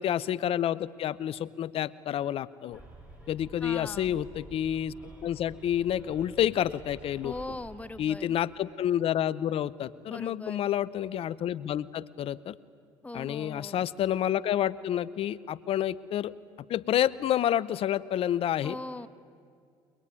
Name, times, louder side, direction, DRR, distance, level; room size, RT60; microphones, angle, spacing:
voice 1, 0.0-2.8 3.3-4.9 5.2-7.3 8.0-12.6 13.1-16.3 16.7-18.8, left 11 dB, 60° left, 18 dB, 0.7 m, -29 dB
Bus, 2.7-8.0, right 2 dB, 10° right, 7.0 m, -50 dB
voice 2, 3.6-4.2 7.2-8.4 10.1-10.7 13.0-13.9 18.6-19.1, left 2 dB, 10° left, 13 dB, 1.1 m, -40 dB
23.5 x 21.0 x 9.7 m, 2.2 s
supercardioid pair, 70°, 11 cm